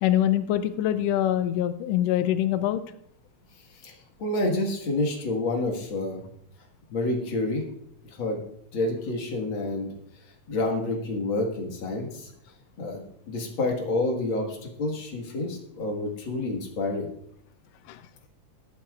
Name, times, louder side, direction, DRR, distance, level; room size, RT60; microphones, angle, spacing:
voice 1, 0.0-2.8 17.9-18.0, left 12 dB, 90° left, 11 dB, 1.4 m, -24 dB
voice 2, 4.2-6.2 6.9-7.7 8.2-8.4 8.7-9.9 10.5-12.3 12.8-17.1, left 2 dB, 45° left, 1 dB, 2.2 m, -28 dB
20.5 x 8.6 x 2.4 m, 0.71 s
omnidirectional pair, 3.4 m